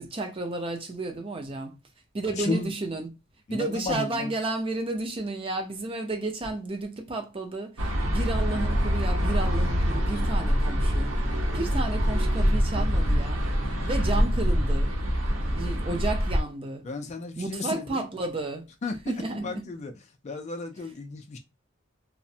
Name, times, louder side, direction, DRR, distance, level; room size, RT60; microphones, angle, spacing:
voice 1, 0.0-1.8 2.1-3.1 3.5-11.2 11.5-13.4 13.8-14.9 15.3-16.9 17.4-19.7 20.8-20.9, right 2 dB, 25° right, 0.5 m, -32 dB
voice 2, 3.5-4.1 16.9-17.8 18.8-18.9 19.4-19.9 20.2-21.4, left 3 dB, 35° left, 0.3 m, -33 dB
sound 1, 7.8-16.4, equal, 80° right, 0.7 m, -25 dB
2.4 x 2.1 x 2.7 m
head